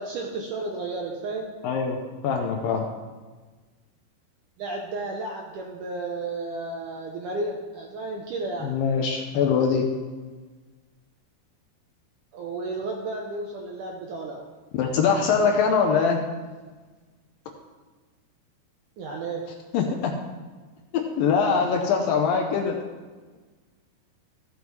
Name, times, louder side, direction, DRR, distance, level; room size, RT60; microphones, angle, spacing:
voice 1, 0.0-1.5 4.6-8.7 12.3-14.4 19.0-19.5, right 2 dB, 75° right, 0 dB, 2.0 m, -32 dB
voice 2, 1.6-2.0 2.2-2.9 8.6-9.8 14.7-16.2 19.7-20.1 21.2-22.8, left 6 dB, 75° left, 2 dB, 2.2 m, -22 dB
14.5 x 7.0 x 3.2 m, 1.3 s
omnidirectional pair, 4.6 m